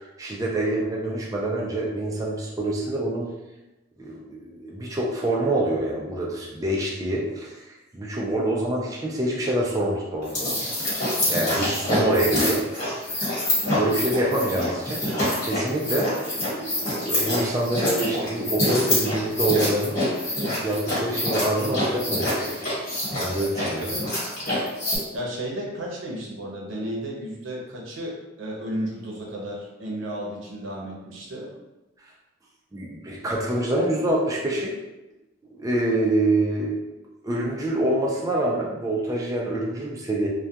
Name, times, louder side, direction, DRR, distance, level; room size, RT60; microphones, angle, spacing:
voice 1, 0.2-3.3 4.0-7.5 7.9-10.7 11.2-12.6 13.7-15.0 15.4-20.0 20.6-22.7 23.2-23.9 32.7-34.7 35.5-36.8 37.2-40.3, right 1 dB, 20° right, -3 dB, 0.3 m, -26 dB
sound 1, 10.2-25.0, left 1 dB, 40° left, 1.2 m, -26 dB
voice 2, 23.9-24.2 25.1-31.5, equal, 85° right, -2 dB, 0.6 m, -33 dB
2.2 x 2.2 x 2.7 m, 1.0 s
head